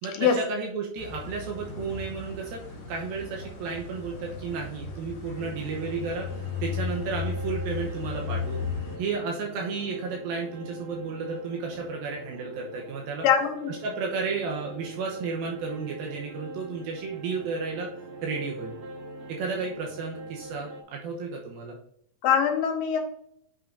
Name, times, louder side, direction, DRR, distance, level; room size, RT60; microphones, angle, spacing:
voice 1, 0.0-2.6 2.9-6.3 6.6-8.6 9.0-13.3 13.7-17.9 18.2-18.8 19.3-21.8, right 4 dB, 75° right, 0 dB, 2.6 m, -33 dB
sound 1, 1.0-9.0, left 5 dB, 55° left, 2.2 m, -35 dB
sound 2, 5.3-20.8, right 1 dB, 60° right, 1.4 m, -43 dB
voice 2, 13.2-13.7 22.2-23.0, left 7 dB, 75° left, 4 dB, 2.7 m, -23 dB
8.7 x 5.6 x 2.6 m, 0.70 s
omnidirectional pair, 4.4 m